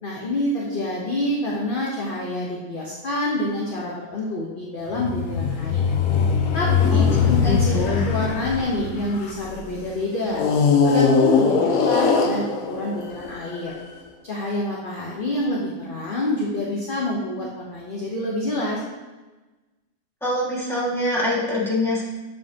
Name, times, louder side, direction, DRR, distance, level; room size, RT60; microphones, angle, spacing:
voice 1, 0.0-5.9 6.5-10.4 10.8-13.7 14.2-18.8, left 1 dB, 45° left, -4 dB, 0.8 m, -27 dB
sound 1, 4.9-9.6 10.3-13.7, left 5 dB, 65° left, 0.9 m, -21 dB
voice 2, 6.9-8.0 20.2-22.0, left 1 dB, ahead, -8 dB, 1.5 m, -25 dB
7.4 x 5.2 x 2.8 m, 1.2 s
omnidirectional pair, 1.8 m